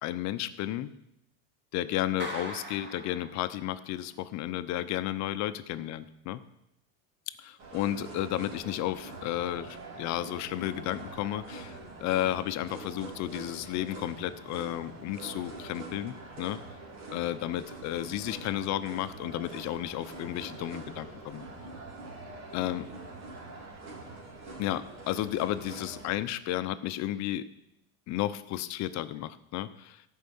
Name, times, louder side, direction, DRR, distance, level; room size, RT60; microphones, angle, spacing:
voice 1, 0.0-0.9 1.7-6.4 7.4-16.6 17.1-21.5 22.5-22.9 24.6-27.5 28.1-30.0, left 13 dB, 40° left, 12 dB, 0.7 m, -33 dB
Clapping, 2.2-3.9, right 1 dB, 25° right, 2.2 m, -41 dB
sound 1, 7.6-26.2, right 2 dB, 65° right, 3.3 m, -44 dB
14.0 x 5.5 x 7.0 m, 0.86 s
supercardioid pair, 135°, 43 cm